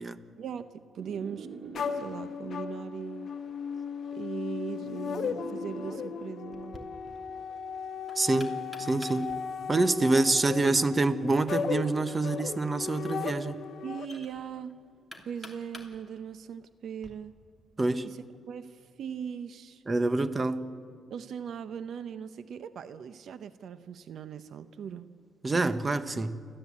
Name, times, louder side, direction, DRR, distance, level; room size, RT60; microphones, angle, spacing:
voice 1, 0.4-1.5 1.9-3.3 4.1-6.8 13.8-14.8 15.2-17.3 18.0-19.8 21.1-25.1, right 7 dB, 65° right, 12 dB, 0.8 m, -39 dB
sound 1, 1.0-2.5 3.5-6.2, right 5 dB, 45° right, 3.4 m, -45 dB
sound 2, 1.7-14.1, left 6 dB, 55° left, 1.3 m, -36 dB
Knock, 6.5-17.1, left 1 dB, ahead, 3.1 m, -53 dB
voice 2, 8.2-9.3 9.7-13.6 17.8-18.1 19.9-20.7 25.4-26.4, right 2 dB, 25° right, 12 dB, 1.1 m, -26 dB
29.5 x 13.5 x 8.6 m, 2.2 s
cardioid pair, 90°, 0 cm